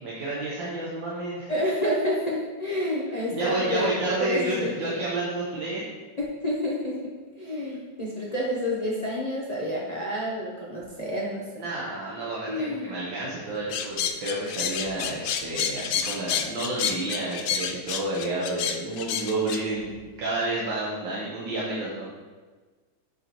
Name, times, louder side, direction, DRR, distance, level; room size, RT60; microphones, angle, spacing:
voice 1, 0.0-1.5 3.2-5.8 11.6-22.1, right 2 dB, 80° right, -6 dB, 1.8 m, -30 dB
voice 2, 1.5-3.9 4.2-4.9 6.2-11.5 12.5-12.9, left 1 dB, 50° left, -5 dB, 0.4 m, -29 dB
sound 1, 13.7-19.6, left 8 dB, 75° left, 0.8 m, -29 dB
7.6 x 5.4 x 3.0 m, 1.3 s
omnidirectional pair, 2.0 m